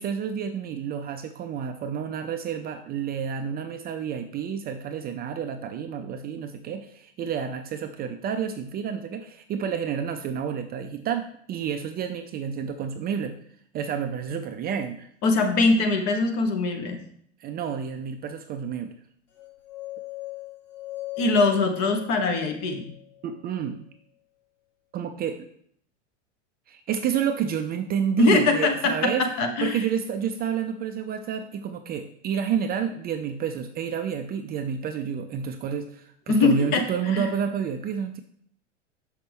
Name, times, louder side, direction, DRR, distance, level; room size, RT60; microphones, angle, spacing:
voice 1, 0.0-13.4 13.7-15.1 17.4-18.9 23.2-23.8 24.9-25.4 26.7-29.3 29.6-38.2, right 7 dB, 25° right, 7 dB, 0.5 m, -30 dB
voice 2, 15.2-17.0 21.2-22.9 28.2-28.9 29.4-29.8 36.3-36.8 37.1-37.3, left 3 dB, 45° left, 5 dB, 1.4 m, -22 dB
sound 1, 19.4-23.5, left 19 dB, 80° left, 1.3 m, -39 dB
6.4 x 5.8 x 3.5 m, 0.64 s
hypercardioid pair, 100°, 37 cm